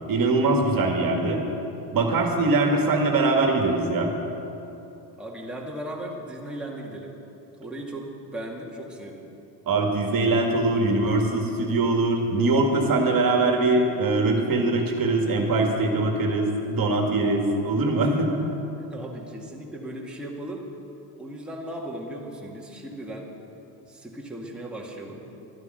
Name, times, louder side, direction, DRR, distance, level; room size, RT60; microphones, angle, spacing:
voice 1, 0.1-1.4 1.9-4.1 9.7-18.3, right 2 dB, 45° right, 2 dB, 2.0 m, -22 dB
voice 2, 5.2-7.1 7.6-9.3 18.9-20.7 21.2-23.3 23.9-25.3, right 1 dB, ahead, -3 dB, 2.1 m, -37 dB
12.0 x 9.7 x 7.8 m, 3.0 s
supercardioid pair, 90°, 50 cm